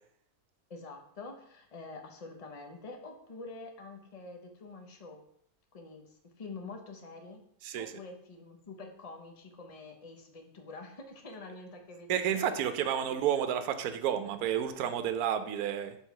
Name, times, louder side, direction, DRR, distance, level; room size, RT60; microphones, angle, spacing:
voice 1, 0.7-5.2 5.7-7.4 7.8-12.6, left 3 dB, 35° left, 3 dB, 0.6 m, -46 dB
voice 2, 7.6-7.9 12.1-16.0, right 9 dB, 75° right, 9 dB, 1.1 m, -31 dB
4.7 x 3.8 x 5.6 m, 0.70 s
omnidirectional pair, 1.6 m